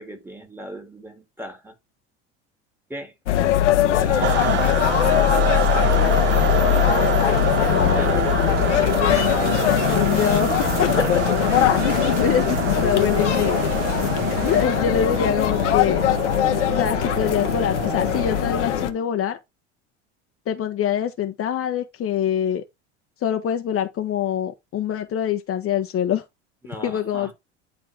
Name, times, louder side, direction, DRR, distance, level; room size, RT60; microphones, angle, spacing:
voice 1, 0.0-1.7 2.9-3.1 3.9-5.2 6.2-6.9 7.7-8.6 11.0-11.2 11.5-11.8 26.6-27.3, right 1 dB, 5° right, 3.0 m, -36 dB
sound 1, 3.3-18.9, left 12 dB, 85° left, 1.3 m, -21 dB
sound 2, 4.2-19.0, right 11 dB, 30° right, 0.6 m, -27 dB
voice 2, 7.7-8.8 9.9-10.9 12.2-13.6 13.9-14.0 14.4-16.0 16.7-19.4 20.5-22.6 23.2-26.2 26.8-27.3, left 9 dB, 40° left, 1.2 m, -25 dB
sound 3, 9.1-14.6, right 9 dB, 70° right, 2.1 m, -35 dB
11.0 x 4.1 x 3.6 m
hypercardioid pair, 85°, 35 cm